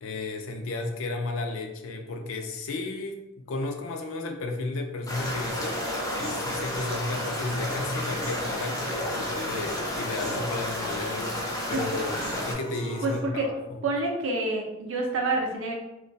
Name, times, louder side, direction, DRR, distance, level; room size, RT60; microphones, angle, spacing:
voice 1, 0.0-11.4 11.7-13.8, left 2 dB, 85° left, 5 dB, 0.4 m, -33 dB
sound 1, 5.1-12.5, left 1 dB, 15° left, 0.4 m, -32 dB
Human voice / Piano, 5.2-13.2, right 1 dB, 30° right, 0.6 m, -39 dB
voice 2, 13.0-13.5 13.8-15.7, right 2 dB, 75° right, 0 dB, 0.5 m, -27 dB
2.2 x 2.2 x 2.5 m, 0.96 s
head